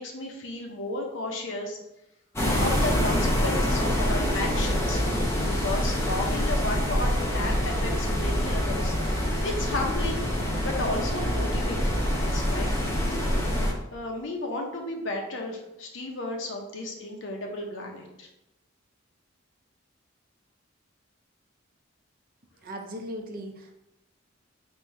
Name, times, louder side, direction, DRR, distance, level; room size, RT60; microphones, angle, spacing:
voice 1, 0.0-1.8 2.6-5.0 5.4-10.2 10.6-12.0 12.3-12.7 13.9-18.3, left 2 dB, 65° left, 1 dB, 0.8 m, -33 dB
sound 1, 2.4-13.7, equal, 15° left, 0.7 m, -26 dB
voice 2, 22.6-23.7, equal, 45° right, 3 dB, 0.5 m, -37 dB
3.5 x 2.7 x 4.4 m, 0.88 s
head